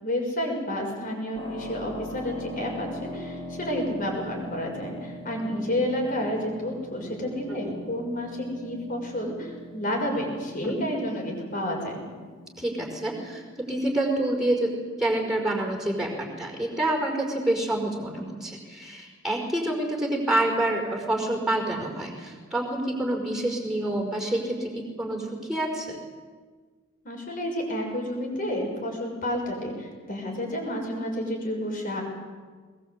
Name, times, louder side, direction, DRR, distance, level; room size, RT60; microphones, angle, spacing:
voice 1, 0.0-12.0 27.0-32.0, left 1 dB, 40° left, 1 dB, 6.3 m, -30 dB
Keyboard (musical), 1.3-13.9, left 1 dB, 25° left, 4.4 m, -42 dB
voice 2, 12.6-14.7 15.0-26.0, right 1 dB, ahead, 0 dB, 5.0 m, -27 dB
21.5 x 21.0 x 8.2 m, 1.5 s
head